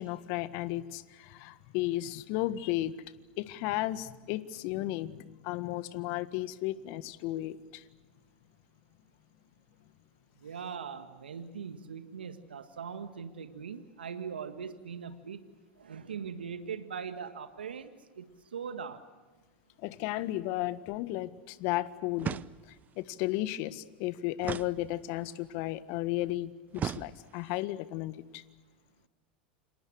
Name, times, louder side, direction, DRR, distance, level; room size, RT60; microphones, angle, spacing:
voice 1, 0.0-2.9 3.4-7.8 19.8-22.4 23.0-28.4, left 16 dB, 55° left, 14 dB, 1.6 m, -34 dB
voice 2, 10.4-15.4 15.8-19.0, right 6 dB, 85° right, 9 dB, 1.7 m, -41 dB
sound 1, 22.2-22.9 24.4-25.4 26.7-27.6, right 9 dB, 30° right, 0.8 m, -38 dB
29.5 x 26.5 x 6.4 m, 1.3 s
hypercardioid pair, 90°, 5 cm